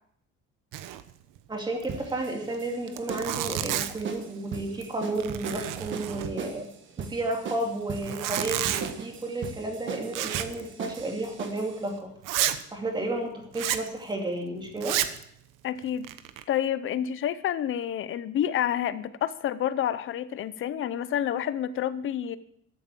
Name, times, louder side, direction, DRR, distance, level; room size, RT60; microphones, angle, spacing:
Zipper (clothing), 0.7-1.1 1.4-1.5 1.8-1.9 2.5-2.6 2.9-4.1 4.6-4.9 5.2-6.6 7.9-8.9 10.1-10.6 10.9-11.0 11.6-11.7 12.2-12.6 13.5-13.9 14.8-15.2 15.8-16.4, right 12 dB, 85° right, 1.1 m, -30 dB
voice 1, 1.5-6.7 7.0-12.1 12.7-15.0, right 2 dB, 15° right, 2.5 m, -32 dB
sound 1, 1.9-11.8, right 5 dB, 40° right, 1.5 m, -39 dB
voice 2, 15.6-16.1 16.5-22.4, left 10 dB, 40° left, 0.7 m, -29 dB
13.5 x 8.3 x 7.5 m
cardioid pair, 175°, 31 cm